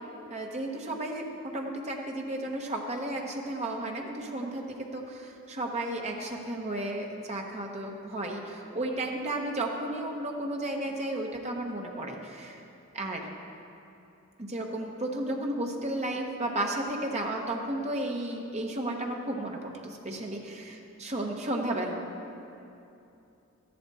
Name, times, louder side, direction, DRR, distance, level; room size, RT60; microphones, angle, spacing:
voice 1, 0.3-4.6 4.9-12.6 12.9-13.3 14.4-22.1, right 1 dB, 30° right, 1 dB, 1.0 m, -33 dB
13.0 x 11.0 x 4.1 m, 2.8 s
head